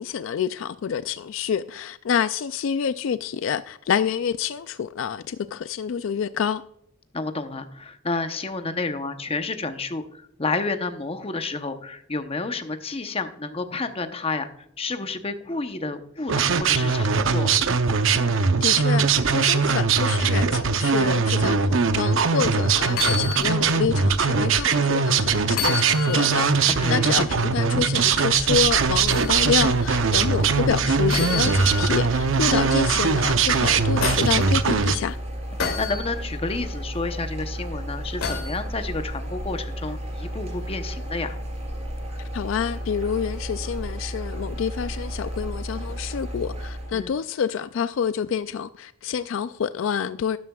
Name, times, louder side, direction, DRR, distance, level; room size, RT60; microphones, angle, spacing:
voice 1, 0.0-6.6 18.3-35.2 42.2-50.4, left 7 dB, 65° left, 0.3 m, -28 dB
voice 2, 7.1-14.5 14.8-17.6 26.8-27.1 32.5-32.7 35.8-41.4 46.9-47.1, left 3 dB, 30° left, 0.8 m, -30 dB
sound 1, 16.3-35.0, right 5 dB, 65° right, 0.7 m, -21 dB
sound 2, 22.9-23.5 24.0-24.1 25.5-26.5 29.1-29.4 31.1-32.0 33.5-34.4 35.6-36.0 38.2-38.6 40.4-40.5, left 6 dB, 80° left, 2.8 m, -29 dB
sound 3, 28.2-47.1, equal, 30° right, 3.8 m, -33 dB
12.5 x 11.0 x 2.3 m
head